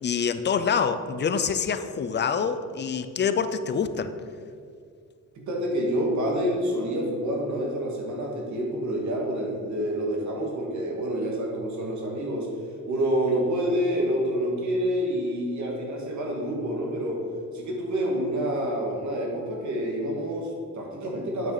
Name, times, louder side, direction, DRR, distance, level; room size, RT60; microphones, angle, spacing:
voice 1, 0.0-4.1, left 6 dB, 35° left, 11 dB, 0.5 m, -26 dB
voice 2, 5.4-12.5 12.9-17.2 17.5-21.5, equal, 70° right, -1 dB, 2.0 m, -28 dB
8.8 x 5.9 x 4.1 m, 2.3 s
cardioid pair, 90°, 30 cm